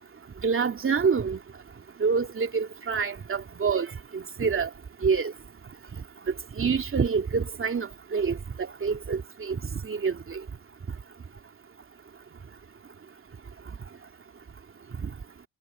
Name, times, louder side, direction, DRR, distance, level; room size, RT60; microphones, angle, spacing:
voice 1, 0.4-1.4 2.0-4.7 5.0-5.3 6.6-10.4 15.0-15.1, right 5 dB, 40° right, 2.9 m, -27 dB
hypercardioid pair, 55°, 32 cm